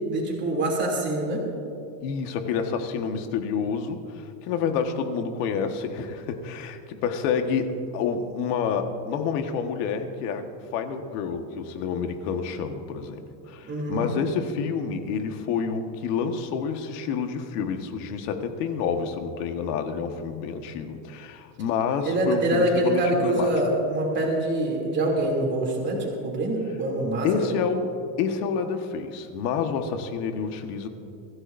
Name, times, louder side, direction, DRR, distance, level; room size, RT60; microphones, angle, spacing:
voice 1, 0.0-1.5 13.6-14.1 22.0-27.3, right 1 dB, 25° right, -2 dB, 2.9 m, -25 dB
voice 2, 2.0-23.5 27.2-30.9, left 6 dB, 80° left, 6 dB, 1.6 m, -28 dB
23.5 x 14.5 x 2.6 m, 2.7 s
cardioid pair, 175°, 46 cm